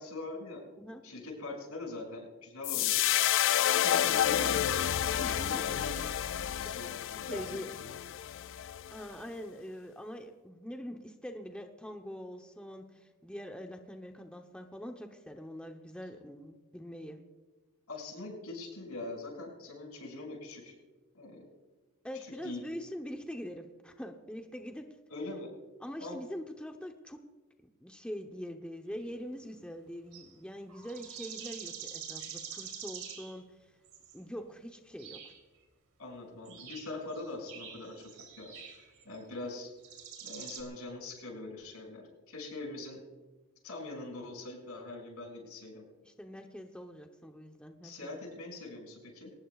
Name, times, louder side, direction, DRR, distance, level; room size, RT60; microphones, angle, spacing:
voice 1, 0.0-0.6 1.0-3.1 3.4-4.8 5.3-6.0 6.5-7.9 17.9-20.7 21.2-21.5 22.4-22.6 25.1-25.5 26.0-26.2 36.0-38.1 38.4-39.7 40.2-43.0 43.6-45.8 47.8-49.3, left 2 dB, 85° left, -1 dB, 6.5 m, -42 dB
sound 1, 2.6-9.0, left 11 dB, 60° left, 0.4 m, -30 dB
voice 2, 5.2-5.6 6.6-6.7 7.2-7.7 8.9-17.2 22.0-24.9 25.8-27.2 27.8-33.4 34.1-35.2 46.0-48.1, equal, 5° left, 3 dB, 0.8 m, -43 dB
sound 2, 29.0-29.1 30.1-30.3 30.7-33.4 33.8-34.2 35.0-35.4 36.5-39.5 39.8-40.6, right 8 dB, 90° right, 3.3 m, -45 dB
23.5 x 19.0 x 2.4 m, 1.2 s
head